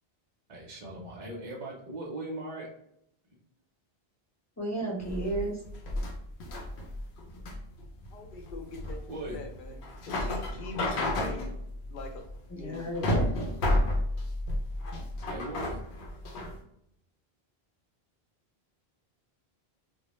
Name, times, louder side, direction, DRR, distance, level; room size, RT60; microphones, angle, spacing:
voice 1, 0.5-2.7 9.1-9.4 15.3-15.8, right 1 dB, 45° right, -2 dB, 0.5 m, -39 dB
voice 2, 4.6-5.6 12.5-13.3, right 1 dB, 25° left, -3 dB, 0.4 m, -33 dB
sound 1, 5.0-16.6, left 1 dB, 90° left, 0.9 m, -31 dB
voice 3, 8.1-9.0 9.3-9.7 10.1-11.6 11.8-12.2 12.5-12.9, left 2 dB, 60° left, 2 dB, 0.7 m, -42 dB
2.2 x 2.0 x 2.9 m, 0.75 s
omnidirectional pair, 1.1 m